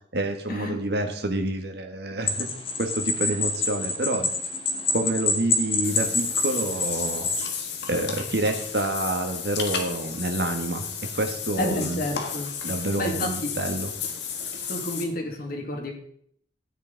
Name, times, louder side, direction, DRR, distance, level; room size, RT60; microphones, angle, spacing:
voice 1, 0.1-2.5 2.8-4.3 4.9-7.3 7.9-10.8 11.1-12.0 12.6-13.9, right 1 dB, 65° right, 5 dB, 1.7 m, -28 dB
sound 1, 2.3-7.5, left 3 dB, 35° left, 2.0 m, -27 dB
Water / Bathtub (filling or washing), 5.8-15.0, left 6 dB, 70° left, 1.8 m, -33 dB
voice 2, 11.6-12.5 13.0-13.5 14.7-15.9, left 1 dB, 55° left, 1 dB, 2.5 m, -30 dB
13.0 x 9.5 x 4.0 m, 0.65 s
head